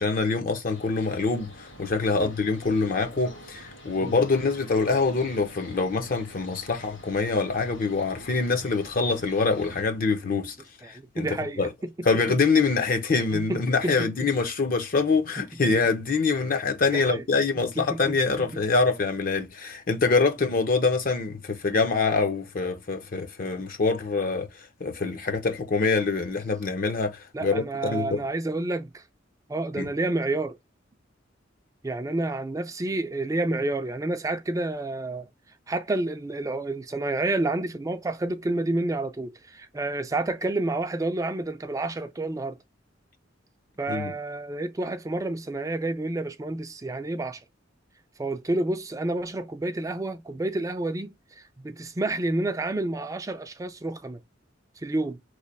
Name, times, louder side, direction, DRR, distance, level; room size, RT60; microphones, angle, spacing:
voice 1, 0.0-10.6 10.8-11.3 11.6-11.7 12.1-24.5 24.8-28.2 29.8-29.9 43.9-44.1, left 4 dB, 45° left, 0.6 m, -25 dB
sound 1, 0.7-9.8, equal, 75° left, 1.5 m, -47 dB
voice 2, 10.8-12.1 13.3-14.3 16.9-17.2 17.6-18.6 27.3-29.0 29.5-30.6 31.8-35.3 35.7-42.6 43.8-47.4 48.2-54.2 54.8-55.2, right 2 dB, 15° right, 0.4 m, -29 dB
3.1 x 2.1 x 4.0 m
head